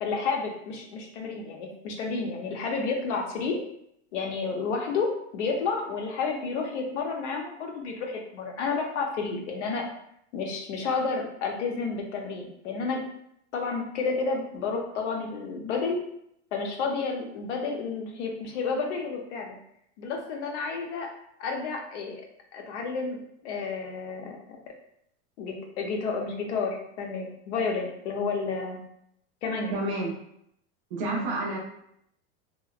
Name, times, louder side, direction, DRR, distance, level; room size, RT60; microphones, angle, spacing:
voice 1, 0.0-3.6 4.1-9.9 10.3-13.0 13.5-16.0 16.5-19.6 20.0-21.1 21.4-22.2 22.5-24.4 25.4-28.8 29.4-29.8 31.0-31.3, left 4 dB, 90° left, 1 dB, 0.7 m, -31 dB
voice 2, 29.7-30.1 30.9-31.6, right 2 dB, 35° right, -1 dB, 0.5 m, -30 dB
2.9 x 2.0 x 2.4 m, 0.74 s
supercardioid pair, 160°, 34 cm